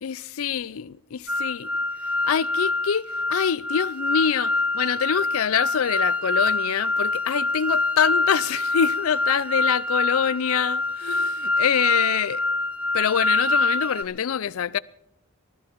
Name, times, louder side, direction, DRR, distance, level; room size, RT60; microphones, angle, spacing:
voice 1, 0.0-1.7 2.2-3.0 3.3-12.4 12.9-14.8, left 8 dB, 80° left, 0.4 m, -25 dB
sound 1, 1.3-14.0, left 2 dB, 5° right, 0.5 m, -25 dB
19.0 x 13.0 x 4.5 m
head